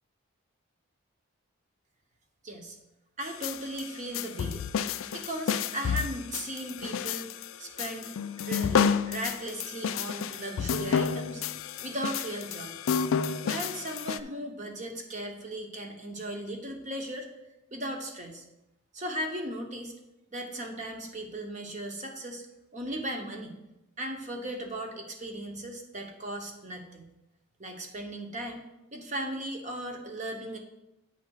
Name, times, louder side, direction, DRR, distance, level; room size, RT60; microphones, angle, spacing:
voice 1, 2.4-2.8 3.2-4.7 5.1-7.3 7.6-8.1 8.4-11.4 11.8-12.8 13.4-17.3 17.7-18.4 18.9-19.9 20.3-22.5 22.7-23.6 24.0-27.1 27.6-30.6, right 1 dB, 35° right, 3 dB, 1.0 m, -37 dB
sound 1, 3.2-14.2, left 7 dB, 65° left, 0.3 m, -30 dB
8.6 x 3.4 x 6.4 m, 0.91 s
head